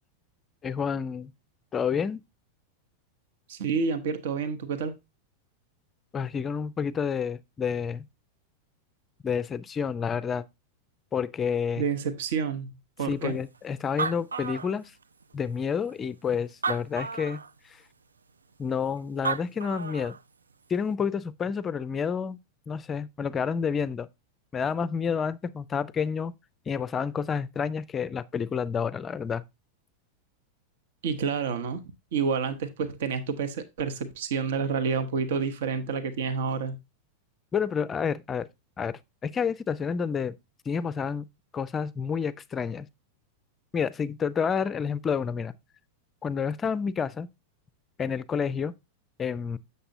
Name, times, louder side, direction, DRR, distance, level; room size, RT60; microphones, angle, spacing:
voice 1, 0.6-1.3 1.7-2.2 6.1-8.0 9.2-10.4 11.1-11.8 13.0-14.9 15.3-17.4 18.6-20.2 20.7-22.4 22.7-24.1 24.5-26.3 26.7-29.4 37.5-38.5 38.8-40.3 40.7-41.3 41.5-42.9 43.7-45.5 46.2-47.3 48.0-48.7 49.2-49.6, left 6 dB, 20° left, 0.4 m, -29 dB
voice 2, 3.5-5.0 11.8-12.7 13.0-13.4 31.0-31.8 32.1-36.8, right 5 dB, 55° right, 0.8 m, -29 dB
Animal, 13.5-13.6 13.8-15.2 15.9-16.0 16.5-17.5 19.0-19.1 19.2-20.2, right 5 dB, 75° right, 0.3 m, -32 dB
7.8 x 6.7 x 2.7 m
figure-of-eight pair, 90°, 0 cm